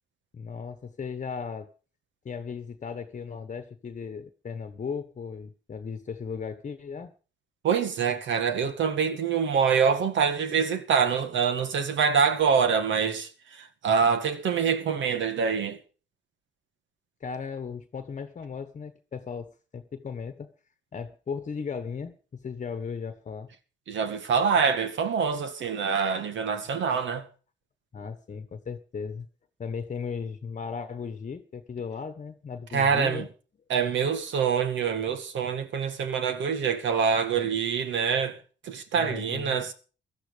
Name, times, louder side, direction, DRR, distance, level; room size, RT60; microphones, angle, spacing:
voice 1, 0.3-1.7 2.2-7.1 17.2-20.5 20.9-23.5 27.9-29.3 29.6-33.3 38.9-39.6, left 6 dB, 40° left, 1.2 m, -36 dB
voice 2, 7.6-15.8 23.9-27.3 32.7-33.3 33.7-39.7, right 6 dB, 70° right, 2.1 m, -25 dB
16.5 x 13.0 x 5.1 m
cardioid pair, 90°, 20 cm